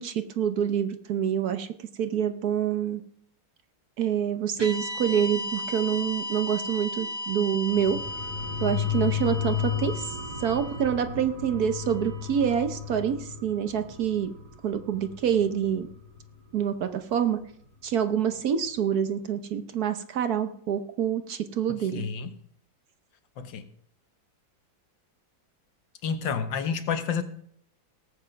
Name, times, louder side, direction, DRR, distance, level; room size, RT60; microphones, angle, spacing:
voice 1, 0.0-1.7 2.0-3.0 4.0-8.0 8.6-14.3 14.6-15.9 16.5-17.4 17.8-22.1, right 8 dB, 60° right, 9 dB, 1.2 m, -27 dB
sound 1, 4.6-12.9, left 1 dB, 15° right, 1.6 m, -36 dB
sound 2, 7.7-16.8 17.1-17.2, left 8 dB, 45° left, 4.4 m, -34 dB
voice 2, 21.9-22.3 23.4-23.6 26.0-27.2, left 6 dB, 75° left, 9 dB, 1.8 m, -29 dB
18.0 x 7.9 x 5.2 m, 0.65 s
omnidirectional pair, 2.1 m